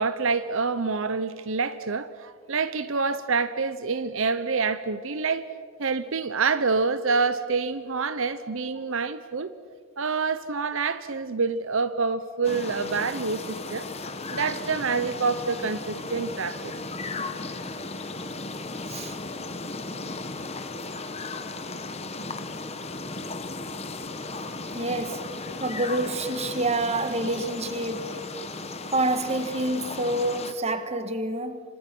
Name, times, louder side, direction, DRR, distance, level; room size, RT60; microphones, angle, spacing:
voice 1, 0.0-5.5 5.8-9.5 10.0-13.9 14.3-16.7, right 4 dB, 65° right, 0.8 m, -27 dB
sound 1, 12.4-30.5, left 3 dB, 30° left, 1.4 m, -36 dB
voice 2, 24.7-25.3 25.6-28.1 28.9-31.6, right 2 dB, 30° right, 1.5 m, -27 dB
29.5 x 26.5 x 6.1 m
head